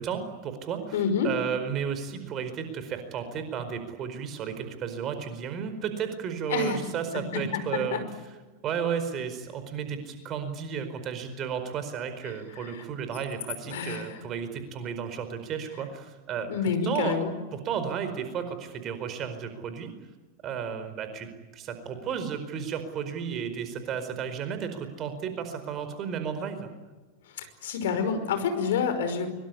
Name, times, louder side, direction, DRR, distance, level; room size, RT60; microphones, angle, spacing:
voice 1, 0.0-0.9 1.2-8.0 8.6-16.5 16.8-17.1 17.5-19.9 20.4-26.7, right 7 dB, 30° right, 9 dB, 4.6 m, -33 dB
voice 2, 0.9-1.3 6.5-6.9 7.3-7.4 7.9-8.0 12.6-12.8 13.7-14.2 16.5-17.4 27.3-29.3, left 6 dB, 55° left, 8 dB, 5.4 m, -28 dB
24.0 x 24.0 x 9.8 m, 1.2 s
figure-of-eight pair, 90°, 0 cm